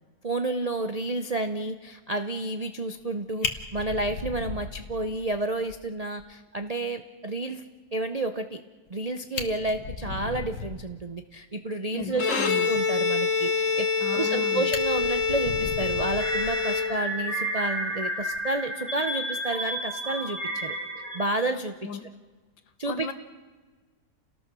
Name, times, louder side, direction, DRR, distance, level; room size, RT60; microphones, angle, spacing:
voice 1, 0.2-7.6 7.9-8.6 8.9-12.3 12.7-13.9 14.1-20.7 21.1-21.7 22.8-23.1, right 2 dB, 55° right, 7 dB, 0.4 m, -30 dB
Fire, 3.0-3.1 3.4-5.3 5.7-5.8 6.2-6.3 6.6-6.7 8.9-9.0 9.2-11.0 13.8-14.3 14.7-16.9 18.2-18.4, left 5 dB, 60° left, 1.9 m, -36 dB
voice 2, 11.9-12.7 14.0-14.7 21.8-22.1 22.9-23.1, left 7 dB, 85° left, 9 dB, 2.1 m, -35 dB
Bowed string instrument, 12.1-17.4, left 5 dB, 45° left, 1.8 m, -26 dB
sound 1, 16.2-21.3, right 1 dB, 10° left, 3.0 m, -32 dB
29.5 x 19.0 x 6.2 m, 1.4 s
omnidirectional pair, 2.0 m